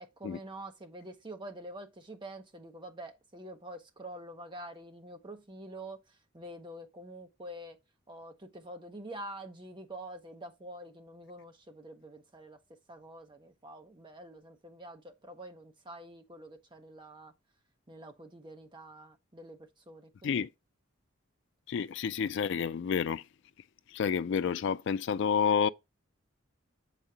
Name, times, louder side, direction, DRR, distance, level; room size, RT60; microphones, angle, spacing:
voice 1, 0.0-7.8 8.1-12.6 12.9-17.3 17.9-20.5, right 1 dB, 25° right, 0.9 m, -46 dB
voice 2, 21.7-23.2 23.9-25.7, left 6 dB, 60° left, 0.3 m, -29 dB
7.2 x 5.0 x 2.8 m
head